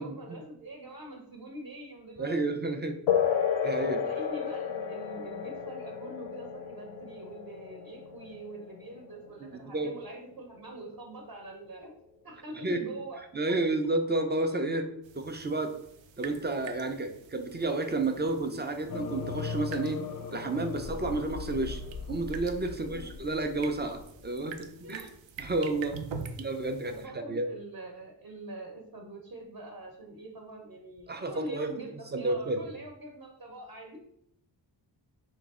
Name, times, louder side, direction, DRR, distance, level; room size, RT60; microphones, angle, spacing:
voice 1, 0.0-2.4 3.8-11.9 12.2-13.2 22.7-23.1 24.8-25.1 26.8-34.0, right 1 dB, 45° right, 0 dB, 0.8 m, -44 dB
voice 2, 2.2-3.0 3.6-4.0 9.4-9.9 12.5-12.8 13.2-14.9 15.1-15.8 16.2-20.0 20.3-21.8 22.1-25.0 25.4-26.0 26.4-27.5 31.1-31.7 32.1-32.6, right 2 dB, 25° right, 6 dB, 0.3 m, -31 dB
sound 1, 3.1-11.1, left 8 dB, 90° left, 0.6 m, -33 dB
sound 2, 15.0-27.1, right 5 dB, 75° right, 0.6 m, -46 dB
sound 3, 18.9-24.6, left 5 dB, 45° left, 0.4 m, -39 dB
4.7 x 3.0 x 3.6 m, 0.73 s
wide cardioid pair, 155°, 46 cm